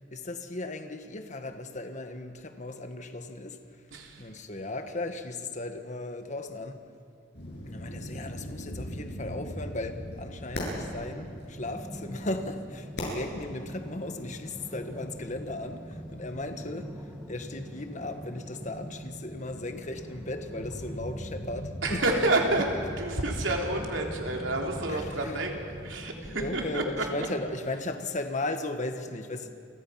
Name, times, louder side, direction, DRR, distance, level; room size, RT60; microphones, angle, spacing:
voice 1, 0.1-6.8 7.6-22.0 22.6-22.7 24.9-25.4 26.2-29.5, left 2 dB, 40° left, 7 dB, 1.6 m, -36 dB
voice 2, 3.9-4.3 21.8-22.6 23.0-25.5 25.8-27.3, right 2 dB, 90° right, 1 dB, 3.6 m, -29 dB
sound 1, 7.3-26.0, equal, 60° left, 8.0 m, -42 dB
sound 2, 10.8-27.6, equal, 5° right, 1.8 m, -44 dB
30.0 x 24.0 x 5.9 m, 2.4 s
head